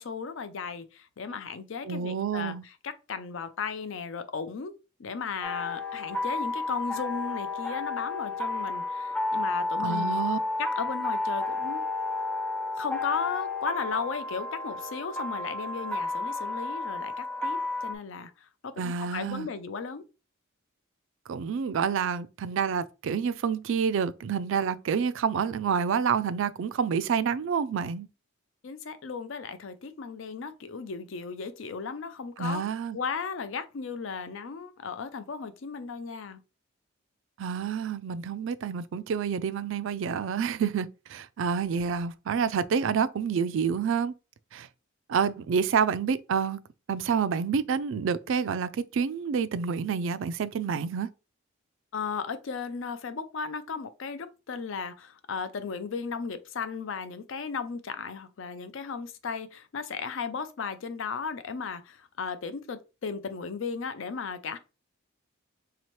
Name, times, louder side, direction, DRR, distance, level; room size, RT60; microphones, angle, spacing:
voice 1, 0.0-4.7 5.0-10.3 10.6-11.8 12.8-20.0 28.6-32.6 32.9-36.4 51.9-64.6, left 5 dB, 65° left, 0.5 m, -35 dB
voice 2, 1.8-2.6 9.8-10.4 18.8-19.5 21.3-28.1 32.4-33.0 37.4-44.1 44.5-44.7 45.1-46.6 46.9-51.1, right 6 dB, 65° right, 0.4 m, -28 dB
sound 1, 5.4-17.9, left 2 dB, 5° left, 0.5 m, -32 dB
4.2 x 2.8 x 3.1 m
head